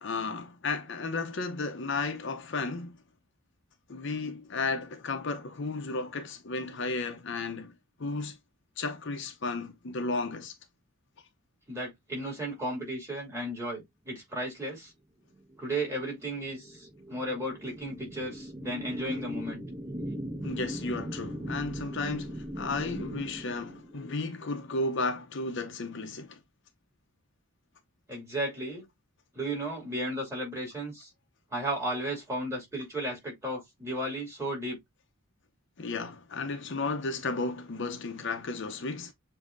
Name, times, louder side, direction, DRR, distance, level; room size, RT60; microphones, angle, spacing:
voice 1, 0.0-3.0 3.9-7.7 8.0-8.4 8.8-10.5 20.4-26.4 35.8-39.1, left 3 dB, 55° left, 0.7 m, -33 dB
voice 2, 11.7-14.9 15.6-19.6 28.1-28.8 29.3-31.1 31.5-34.8, right 1 dB, 15° right, 2.7 m, -34 dB
sound 1, 15.5-24.3, equal, 35° right, 1.2 m, -39 dB
7.2 x 2.8 x 2.5 m
head